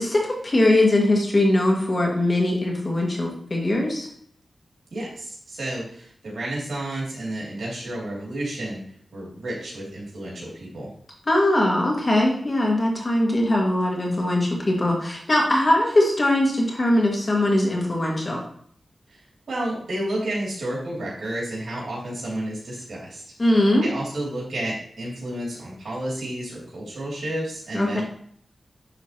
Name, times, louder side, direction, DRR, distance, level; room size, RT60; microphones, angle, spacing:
voice 1, 0.0-4.1 11.3-18.4 23.4-23.9 27.7-28.0, left 1 dB, 45° left, -1 dB, 1.9 m, -21 dB
voice 2, 4.9-8.8 9.1-10.9 19.1-19.2 19.5-23.3 23.8-28.0, right 1 dB, 80° right, -4 dB, 2.7 m, -31 dB
10.0 x 3.9 x 2.9 m, 0.62 s
cardioid pair, 55°, 0 cm